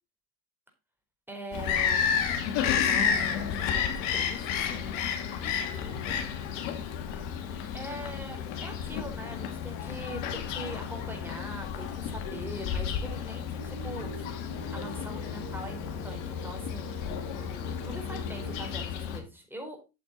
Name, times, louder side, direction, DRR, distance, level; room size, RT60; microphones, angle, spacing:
voice 1, 1.3-2.1 2.5-5.1 5.4-6.2 7.7-14.3 14.7-16.9 17.8-19.8, right 1 dB, 5° right, 3 dB, 4.5 m, -42 dB
Bird vocalization bird call bird song, 1.5-19.2, left 7 dB, 75° left, 2.1 m, -32 dB
sound 1, 13.5-18.9, right 7 dB, 65° right, 3.7 m, -46 dB
8.6 x 7.6 x 4.1 m, 0.27 s
supercardioid pair, 80°, 47 cm